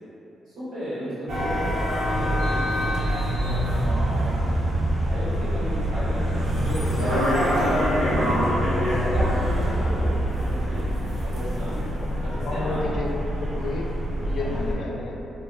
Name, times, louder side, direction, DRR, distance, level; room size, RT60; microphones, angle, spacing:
voice 1, 0.5-4.6 5.1-8.4 8.9-11.9 12.2-12.9 14.4-14.8, equal, 85° right, -12 dB, 1.1 m, -34 dB
sound 1, 1.3-14.7, equal, 70° right, 0.7 m, -25 dB
sound 2, 2.0-3.1 3.4-5.2 5.5-7.2 7.5-9.9, right 1 dB, 10° right, 0.6 m, -32 dB
voice 2, 11.4-13.1 13.4-13.9 14.3-15.2, left 2 dB, 70° left, -2 dB, 0.4 m, -32 dB
2.6 x 2.3 x 2.5 m, 3.0 s
supercardioid pair, 50°, 0 cm